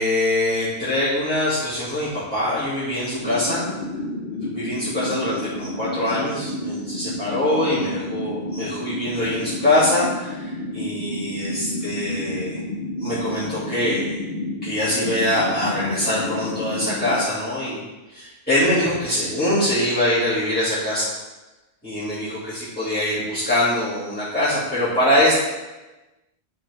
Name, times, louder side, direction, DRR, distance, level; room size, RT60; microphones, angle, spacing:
voice 1, 0.0-3.7 4.3-12.6 13.0-14.2 14.6-17.8 18.1-21.1 21.8-25.4, left 1 dB, 10° left, -12 dB, 2.4 m, -23 dB
sound 1, 3.2-17.2, left 1 dB, 50° left, 0.9 m, -30 dB
11.0 x 4.6 x 3.5 m, 1.1 s
omnidirectional pair, 1.1 m